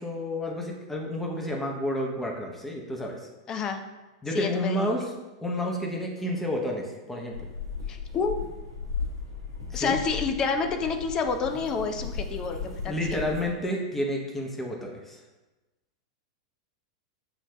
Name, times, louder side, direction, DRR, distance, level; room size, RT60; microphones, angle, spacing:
voice 1, 0.0-3.2 4.2-5.1 5.4-7.4 9.7-10.0 12.9-15.2, left 1 dB, 10° left, 0 dB, 0.8 m, -30 dB
voice 2, 3.5-3.8 4.3-4.9 7.9-8.4 9.7-13.2, left 5 dB, 30° left, 6 dB, 0.5 m, -29 dB
sound 1, 7.3-13.5, left 5 dB, 90° right, 1.0 m, -36 dB
6.9 x 2.6 x 2.2 m, 1.1 s
figure-of-eight pair, 95°, 2 cm